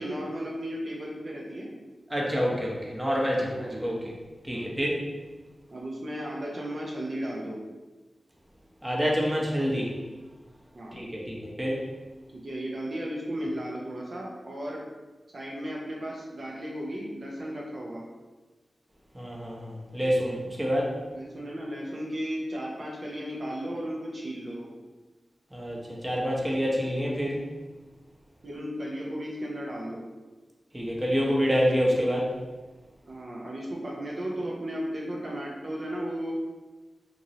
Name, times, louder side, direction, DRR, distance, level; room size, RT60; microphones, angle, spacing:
voice 1, 0.0-1.7 3.5-3.9 4.5-4.8 5.7-7.6 10.7-11.0 12.3-14.8 15.3-18.0 21.1-24.7 28.4-30.0 33.1-36.3, equal, 65° right, -3 dB, 0.6 m, -35 dB
voice 2, 2.1-4.1 4.5-5.0 8.8-9.9 10.9-11.8 19.1-20.9 25.5-27.4 30.7-32.3, equal, 15° right, -3 dB, 0.8 m, -27 dB
3.0 x 2.6 x 2.7 m, 1.2 s
cardioid pair, 50°, 0 cm